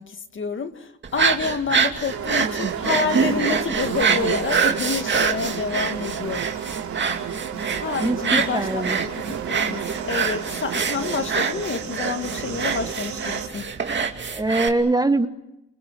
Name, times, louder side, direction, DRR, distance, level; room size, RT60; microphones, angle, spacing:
voice 1, 0.0-6.8 7.8-13.7, left 5 dB, 40° left, 1.9 m, -28 dB
sound 1, 1.0-14.7, right 5 dB, 40° right, 2.5 m, -25 dB
sound 2, 2.1-13.5, right 8 dB, 75° right, 3.5 m, -31 dB
voice 2, 8.0-9.0 14.3-15.3, right 2 dB, 15° right, 1.3 m, -22 dB
28.5 x 24.5 x 6.8 m
cardioid pair, 90°, 30 cm